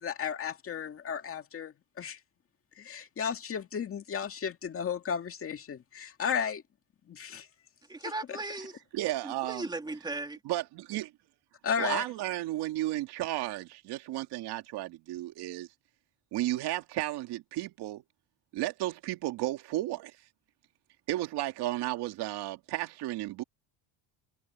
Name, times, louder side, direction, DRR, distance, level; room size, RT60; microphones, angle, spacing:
voice 1, 0.0-2.2 2.8-6.6 7.1-7.5 8.3-8.4 11.6-12.0, left 7 dB, 30° left, 2.1 m, -34 dB
voice 2, 7.9-8.7 9.2-10.4, right 2 dB, 10° right, 2.9 m, -37 dB
voice 3, 8.9-9.7 10.5-11.1 11.8-15.7 16.3-18.0 18.5-20.1 21.1-23.4, right 16 dB, 65° right, 2.3 m, -33 dB
cardioid pair, 150°, 42 cm